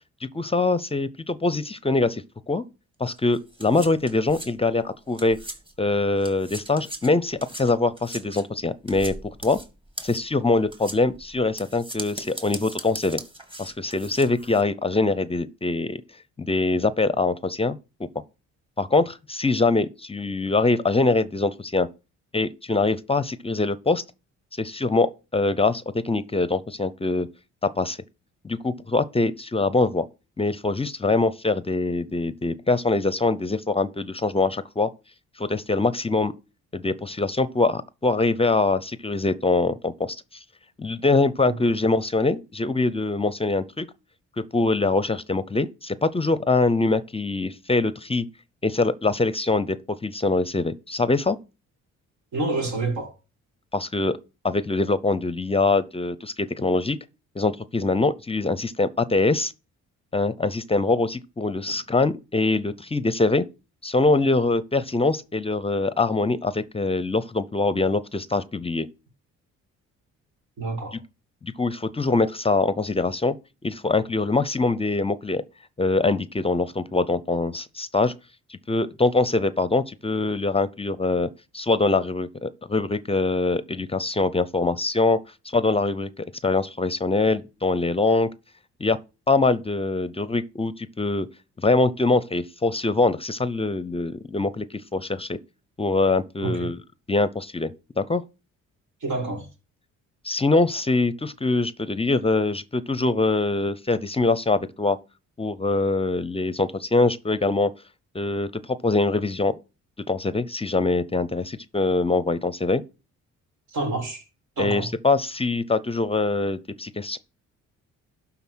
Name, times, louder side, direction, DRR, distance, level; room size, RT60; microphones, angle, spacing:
voice 1, 0.3-2.6 3.0-5.4 5.8-9.1 9.4-9.6 10.0-13.2 13.6-16.0 16.4-18.1 18.8-21.9 22.3-24.0 24.6-27.3 27.8-28.0 28.4-30.0 30.4-34.9 35.4-36.3 36.7-40.2 40.8-43.9 44.5-48.2 48.6-49.8 50.0-51.4 53.7-54.2 54.4-57.0 57.4-59.5 60.1-63.4 63.8-68.9 70.9-71.0 71.4-73.3 73.6-75.4 75.8-78.1 78.5-81.3 81.5-85.2 85.4-88.3 88.8-89.0 89.3-91.3 91.6-94.7 94.9-95.4 95.8-96.8 97.1-98.2 100.2-105.0 105.4-107.7 108.1-109.5 110.1-112.8 114.6-117.2, left 3 dB, 20° left, 0.6 m, -23 dB
sound 1, 3.1-5.9 6.2-14.6, right 1 dB, 15° right, 1.7 m, -40 dB
voice 2, 52.3-53.1 61.7-61.8 70.6-71.0 96.4-96.7 99.0-99.5 113.7-114.2 114.6-114.9, right 2 dB, 70° right, 2.6 m, -28 dB
12.0 x 4.0 x 6.1 m
cardioid pair, 90°, 30 cm